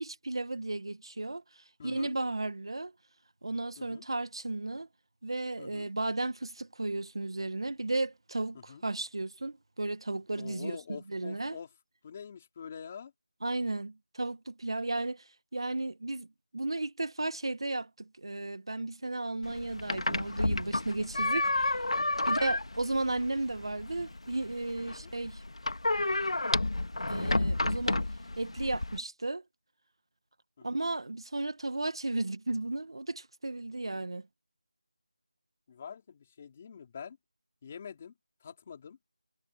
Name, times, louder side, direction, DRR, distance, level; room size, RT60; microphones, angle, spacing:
voice 1, 0.0-2.9 3.4-4.9 5.2-10.8 11.1-11.6 13.4-16.3 16.5-21.8 22.3-25.4 27.1-28.0 28.4-29.4 30.6-34.2, right 2 dB, 45° right, 1.5 m, -34 dB
voice 2, 1.8-2.1 3.8-4.1 5.6-5.9 8.5-8.8 10.4-11.7 12.0-13.1 21.0-21.3 22.2-22.5 24.9-25.1 30.6-30.8 35.7-37.2 37.6-38.1 38.4-39.0, left 7 dB, 15° left, 3.4 m, -46 dB
sound 1, 19.4-29.0, left 2 dB, 60° left, 2.6 m, -31 dB
figure-of-eight pair, 180°, 4 cm